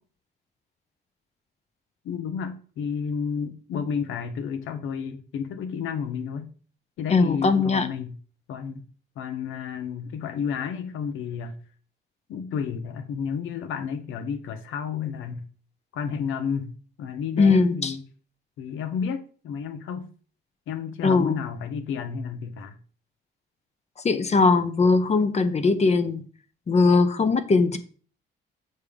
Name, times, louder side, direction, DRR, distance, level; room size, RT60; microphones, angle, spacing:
voice 1, 2.0-6.5 7.0-8.1 8.5-8.8 9.2-11.6 12.3-15.4 15.9-18.0 18.6-20.1 20.7-22.8, left 6 dB, 80° left, 0.9 m, -31 dB
voice 2, 7.1-7.9 17.4-17.9 21.0-21.4 24.0-26.2 26.7-27.8, left 4 dB, 35° left, 0.8 m, -20 dB
6.5 x 3.6 x 5.0 m
cardioid pair, 90°, 20 cm